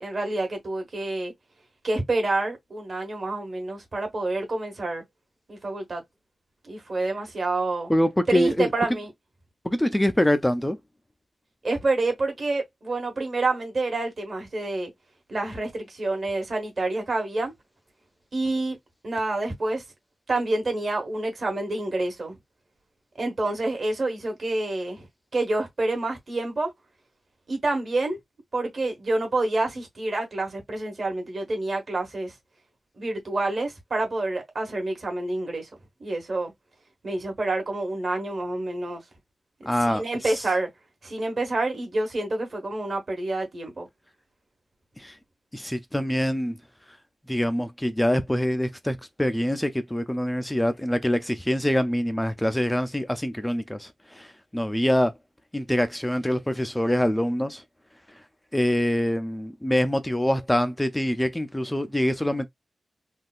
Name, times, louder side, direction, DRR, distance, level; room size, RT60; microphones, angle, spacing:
voice 1, 0.0-1.3 1.8-5.0 5.5-6.0 6.6-7.9 8.3-9.1 11.6-14.9 15.3-17.5 18.3-18.8 19.0-19.8 20.3-22.4 23.2-25.1 25.3-26.7 27.5-28.2 28.5-32.3 33.0-35.7 36.0-36.5 37.0-39.0 39.8-40.7 41.0-43.9, right 2 dB, 45° right, 1.3 m, -28 dB
voice 2, 7.9-8.7 9.6-10.8 39.7-40.4 45.0-45.1 45.5-46.6 47.3-55.1 55.5-57.6 58.5-62.5, equal, 10° left, 0.3 m, -25 dB
3.5 x 2.2 x 2.4 m
wide cardioid pair, 160°, 0 cm